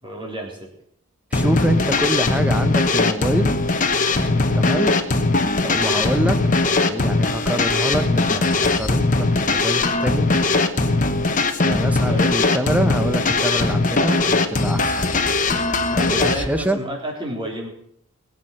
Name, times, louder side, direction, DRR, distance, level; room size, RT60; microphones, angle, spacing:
voice 1, 0.0-0.7 11.8-12.2 15.9-17.7, right 1 dB, 20° right, 0 dB, 3.4 m, -30 dB
sound 1, 1.3-16.5, left 3 dB, 35° left, 1.1 m, -20 dB
voice 2, 1.3-3.6 4.5-4.9 5.6-10.5 11.6-15.2 15.9-16.8, equal, 5° right, 10 dB, 0.9 m, -26 dB
21.5 x 7.8 x 6.5 m, 0.68 s
head